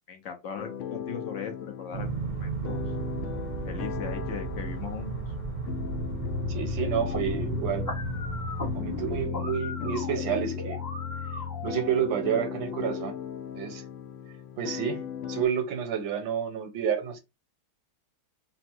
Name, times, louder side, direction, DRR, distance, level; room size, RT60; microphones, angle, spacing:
voice 1, 0.0-2.8 3.6-5.1, left 6 dB, 70° left, 0.7 m, -39 dB
sound 1, 0.6-15.5, left 8 dB, 85° left, 1.4 m, -36 dB
sound 2, 1.9-9.3, right 4 dB, 55° right, 0.5 m, -34 dB
voice 2, 6.5-7.9 8.7-10.8 11.6-13.2 13.5-13.8 14.6-17.2, right 8 dB, 75° right, 1.6 m, -30 dB
sound 3, 7.0-12.0, left 2 dB, 20° left, 0.6 m, -38 dB
4.1 x 2.1 x 4.3 m
omnidirectional pair, 2.1 m